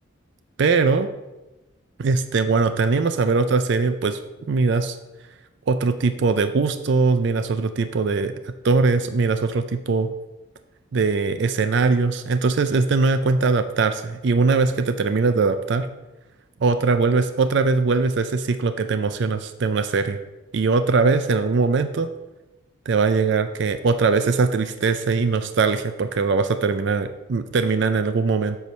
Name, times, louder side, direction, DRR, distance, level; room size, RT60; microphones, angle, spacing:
voice 1, 0.6-1.1 2.0-4.2 4.5-5.0 5.7-10.1 10.9-15.9 16.6-20.2 20.5-22.1 22.9-28.6, right 4 dB, 55° right, 10 dB, 0.4 m, -21 dB
8.2 x 4.6 x 5.3 m, 1.0 s
head